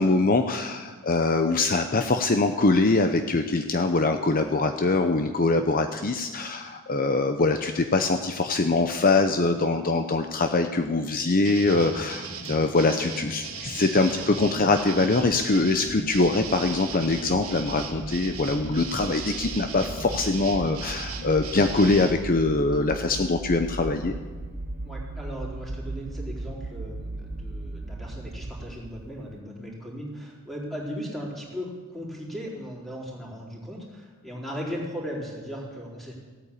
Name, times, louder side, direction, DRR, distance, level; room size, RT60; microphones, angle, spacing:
voice 1, 0.0-24.1, left 3 dB, 40° left, 7 dB, 0.7 m, -23 dB
sound 1, 11.4-22.1, right 4 dB, 85° right, 2.1 m, -37 dB
sound 2, 13.9-29.2, right 2 dB, 45° right, 0.8 m, -38 dB
voice 2, 24.8-36.2, equal, ahead, -4 dB, 4.0 m, -37 dB
16.5 x 9.0 x 8.5 m, 1.4 s
head